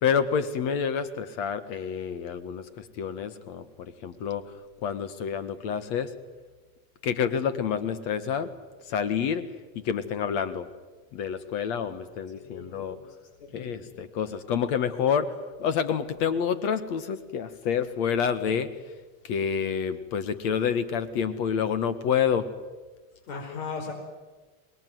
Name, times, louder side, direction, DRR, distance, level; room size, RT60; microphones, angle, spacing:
voice 1, 0.0-4.4 4.8-6.1 7.0-8.5 8.9-9.5 9.7-10.7 11.1-13.0 13.5-15.3 15.6-18.7 19.2-22.5, left 7 dB, 45° left, 12 dB, 1.6 m, -28 dB
voice 2, 12.3-13.0 13.4-13.9 23.3-23.9, left 5 dB, 75° left, 1 dB, 5.5 m, -38 dB
25.0 x 20.5 x 9.4 m, 1.3 s
supercardioid pair, 175°, 41 cm